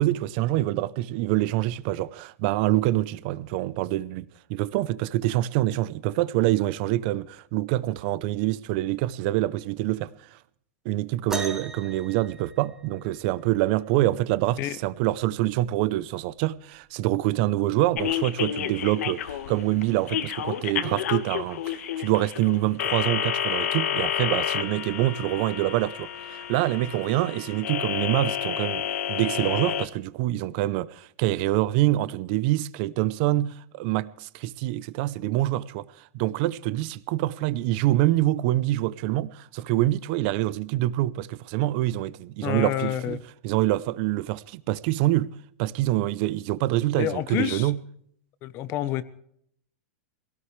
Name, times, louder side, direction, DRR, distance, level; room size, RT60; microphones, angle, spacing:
voice 1, 0.0-10.4 10.8-28.8 29.1-45.3 45.6-47.8, right 16 dB, 40° right, 0.7 m, -26 dB
sound 1, 11.3-13.2 14.9-15.0 15.8-16.0 16.9-17.0, right 2 dB, 5° right, 1.8 m, -36 dB
sound 2, 18.0-29.9, left 10 dB, 70° left, 1.5 m, -30 dB
voice 2, 42.4-43.2 47.0-47.7 48.4-49.0, left 13 dB, 30° left, 0.9 m, -28 dB
23.5 x 17.5 x 3.3 m
supercardioid pair, 160°, 8 cm